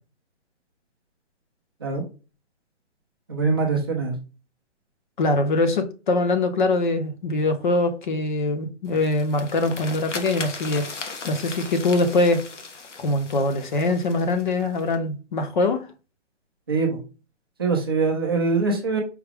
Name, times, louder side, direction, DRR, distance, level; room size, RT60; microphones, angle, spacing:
voice 1, 3.3-4.1 16.7-17.0 17.6-19.0, right 4 dB, 20° right, 0.5 m, -23 dB
voice 2, 5.2-10.9 11.3-12.4 13.0-15.8, left 2 dB, 40° left, 0.7 m, -23 dB
sound 1, 8.9-15.0, left 4 dB, 80° left, 1.1 m, -38 dB
4.8 x 2.2 x 3.3 m
hypercardioid pair, 160°, 36 cm